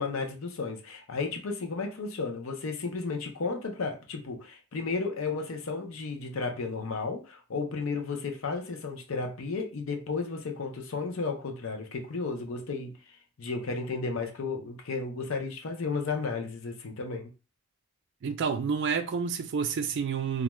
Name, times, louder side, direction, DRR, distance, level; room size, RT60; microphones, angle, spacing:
voice 1, 0.0-12.9 13.4-17.3, left 4 dB, 70° left, 0.6 m, -33 dB
voice 2, 18.2-20.4, right 6 dB, 60° right, 0.3 m, -29 dB
2.4 x 2.2 x 3.0 m
head